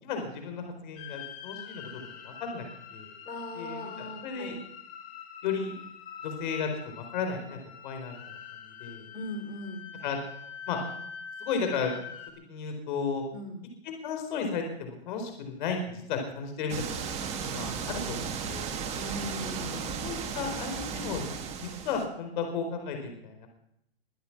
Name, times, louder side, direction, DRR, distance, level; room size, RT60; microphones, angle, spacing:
voice 1, 0.0-1.9 2.2-2.6 2.9-3.1 3.5-4.6 5.4-5.7 6.2-6.7 6.9-8.2 8.8-9.1 10.0-10.2 10.7-10.8 11.4-11.9 12.5-13.2 13.8-16.9 17.5-18.7 20.0-21.2 21.6-23.5, left 5 dB, 50° left, 5 dB, 4.4 m, -34 dB
sound 1, 1.0-12.3, left 7 dB, 25° left, 2.3 m, -45 dB
voice 2, 3.3-4.5 9.1-9.9 13.3-13.6 18.9-20.0, left 1 dB, 80° left, 4 dB, 4.3 m, -39 dB
sound 2, 16.7-22.1, right 6 dB, 20° right, 1.7 m, -35 dB
23.0 x 8.2 x 6.0 m, 0.75 s
hypercardioid pair, 145°, 32 cm